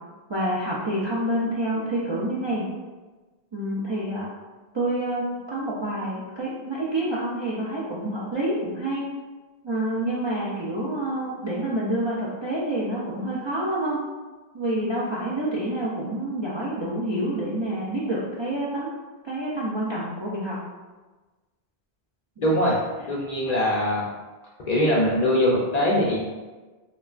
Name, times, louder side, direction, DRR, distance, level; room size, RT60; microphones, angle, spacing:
voice 1, 0.3-2.7 3.5-4.3 4.7-9.1 9.6-14.0 14.5-18.9 19.2-20.6 22.4-22.5, right 1 dB, 50° right, -7 dB, 0.3 m, -28 dB
voice 2, 22.4-24.1 24.7-26.2, left 1 dB, 55° left, -4 dB, 0.5 m, -22 dB
3.0 x 2.3 x 2.4 m, 1.2 s
omnidirectional pair, 1.0 m